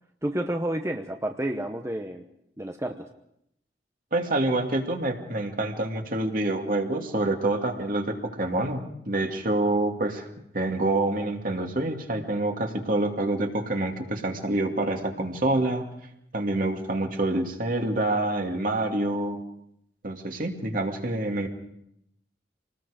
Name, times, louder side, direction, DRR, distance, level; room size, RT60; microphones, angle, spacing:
voice 1, 0.2-2.2 2.6-3.1, right 1 dB, 15° right, 5 dB, 0.9 m, -30 dB
voice 2, 4.1-10.3 10.5-15.8 16.3-19.4 20.0-21.5, right 2 dB, 50° right, 3 dB, 2.5 m, -27 dB
27.0 x 19.5 x 5.1 m, 0.77 s
head